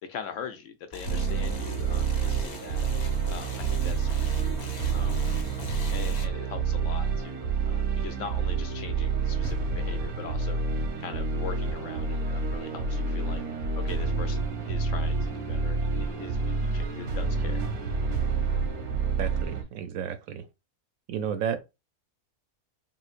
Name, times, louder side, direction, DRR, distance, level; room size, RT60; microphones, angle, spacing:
voice 1, 0.0-2.9 3.3-13.4 13.7-17.6, left 7 dB, 70° left, 0.9 m, -42 dB
sound 1, 0.9-6.2, left 1 dB, 45° left, 0.5 m, -41 dB
sound 2, 1.1-19.6, right 4 dB, 90° right, 1.3 m, -28 dB
voice 2, 19.2-20.5 21.1-21.6, right 8 dB, 75° right, 0.9 m, -32 dB
3.8 x 2.6 x 2.4 m
omnidirectional pair, 1.5 m